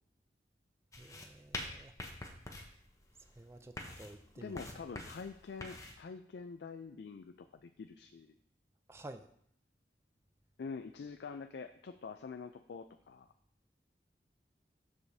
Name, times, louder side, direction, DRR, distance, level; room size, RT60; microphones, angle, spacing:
sound 1, 0.9-6.0, left 1 dB, 20° left, 0.7 m, -46 dB
voice 1, 1.0-1.9 3.4-4.6 8.9-9.3, right 1 dB, 15° right, 8 dB, 0.4 m, -51 dB
voice 2, 4.4-8.3 10.6-13.3, left 5 dB, 75° left, 8 dB, 0.4 m, -46 dB
13.0 x 4.9 x 2.7 m, 0.67 s
head